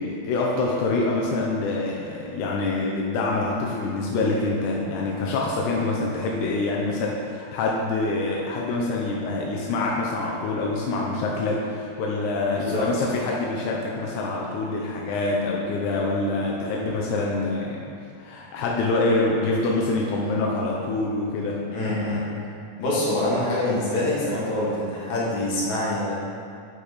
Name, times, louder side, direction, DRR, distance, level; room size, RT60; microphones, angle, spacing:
voice 1, 0.0-17.8 18.2-21.6, left 2 dB, 80° left, -3 dB, 1.8 m, -25 dB
voice 2, 12.5-12.9 16.4-16.8 21.7-22.3 22.8-26.2, left 1 dB, 60° left, -7 dB, 2.6 m, -26 dB
6.1 x 5.9 x 4.0 m, 2.4 s
omnidirectional pair, 4.1 m